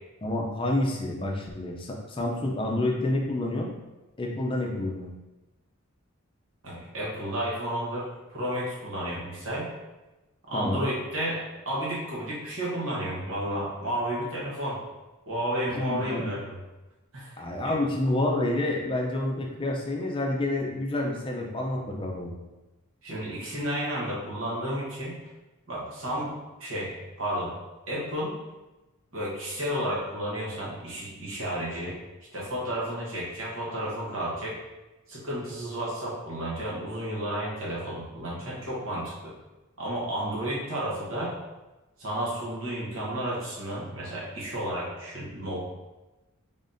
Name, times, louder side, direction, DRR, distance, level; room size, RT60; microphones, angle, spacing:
voice 1, 0.2-3.7 4.2-5.1 10.5-10.8 15.7-16.3 17.4-22.4, left 1 dB, 25° left, 0 dB, 0.5 m, -28 dB
voice 2, 6.6-9.7 10.5-14.8 15.3-16.5 17.1-17.8 23.0-25.2 25.7-26.3 26.6-27.5 27.9-28.4 29.1-32.0 32.3-34.6 35.1-39.3 39.8-41.4 42.0-45.7, right 1 dB, 60° right, -6 dB, 1.1 m, -32 dB
3.9 x 3.5 x 2.6 m, 1.1 s
head